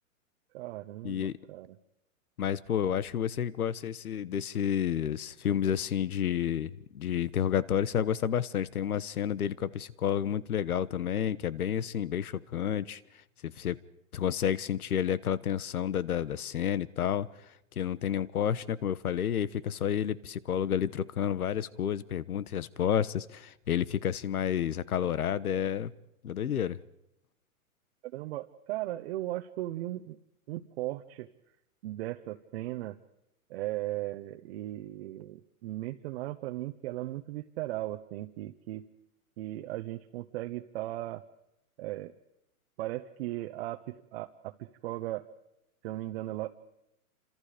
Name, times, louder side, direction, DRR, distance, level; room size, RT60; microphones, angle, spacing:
voice 1, 0.5-1.8 28.1-30.2 30.5-31.3 31.8-33.0 33.5-38.9 39.4-41.2 41.8-42.1 42.8-45.2 45.8-46.6, right 16 dB, 45° right, 1.1 m, -37 dB
voice 2, 2.4-13.0 13.4-13.8 14.1-17.3 17.8-25.9 26.2-26.8, left 9 dB, 90° left, 1.2 m, -30 dB
28.5 x 26.0 x 5.1 m
hypercardioid pair, 145°, 42 cm